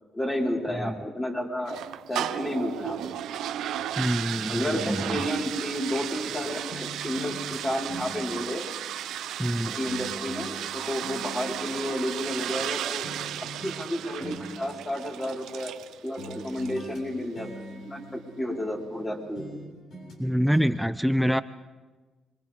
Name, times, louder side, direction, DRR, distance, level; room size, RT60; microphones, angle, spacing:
voice 1, 0.1-3.2 4.5-8.6 9.7-13.1 13.4-15.8 16.0-19.5, equal, 15° left, -3 dB, 5.0 m, -31 dB
sound 1, 1.7-16.9, right 11 dB, 80° right, 0.8 m, -35 dB
voice 2, 4.0-5.2 9.4-9.7 20.2-21.4, equal, ahead, 12 dB, 0.6 m, -26 dB
sound 2, 4.7-6.3 6.7-9.5 9.8-12.7 13.0-13.9 14.2-15.8 16.2-19.0 19.3-20.2 20.5-20.6, equal, 70° left, 7.0 m, -44 dB
30.0 x 23.5 x 3.8 m, 1.3 s
cardioid pair, 90°, 0 cm